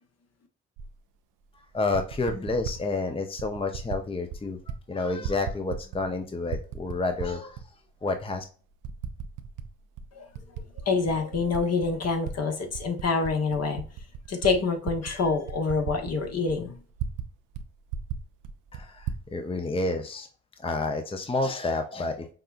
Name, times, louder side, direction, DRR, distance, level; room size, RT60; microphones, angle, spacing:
Typing, 0.8-0.9 1.7-2.8 3.4-4.0 4.3-4.8 5.1-6.1 6.4-7.6 8.2-8.3 8.8-9.7 10.0-12.3 12.7-17.3 17.5-17.6 17.9-19.2, right 7 dB, 80° right, 0.5 m, -36 dB
voice 1, 1.7-4.6 4.9-7.6 8.0-8.4 18.7-20.3 20.6-22.3, left 3 dB, 20° left, 6 dB, 0.6 m, -29 dB
voice 2, 10.9-13.8 14.3-16.7, left 4 dB, 55° left, 4 dB, 1.1 m, -26 dB
5.5 x 2.2 x 2.5 m, 0.39 s
hypercardioid pair, 45°, 31 cm